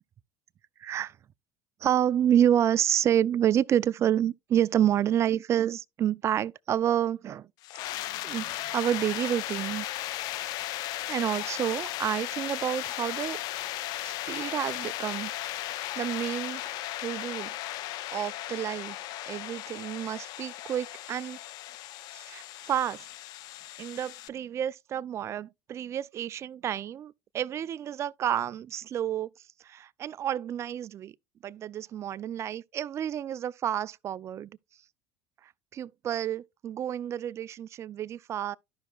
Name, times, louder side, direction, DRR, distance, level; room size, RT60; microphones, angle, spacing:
voice 1, 0.8-1.2 1.8-7.5 8.2-9.9 11.1-13.4 14.0-16.8 17.0-17.5 18.1-19.0 19.3-21.4 22.1-23.1 23.8-29.3 29.6-31.1 31.4-34.5 35.4-38.6, right 10 dB, 40° right, 0.4 m, -29 dB
sound 1, 7.6-24.3, left 15 dB, 65° left, 0.4 m, -36 dB
12.0 x 5.5 x 2.3 m
supercardioid pair, 90°, 7 cm